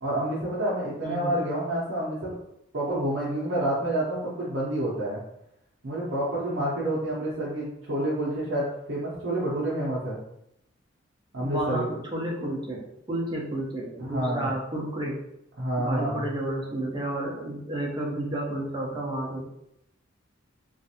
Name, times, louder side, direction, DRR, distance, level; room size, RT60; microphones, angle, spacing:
voice 1, 0.0-2.3 2.7-5.2 5.8-10.2 11.3-11.9 14.0-14.5 15.6-16.2, right 1 dB, 65° right, -7 dB, 0.7 m, -28 dB
voice 2, 1.0-1.4 11.4-15.2 15.8-19.5, right 1 dB, 20° right, -3 dB, 0.7 m, -31 dB
3.2 x 2.5 x 2.8 m, 0.78 s
head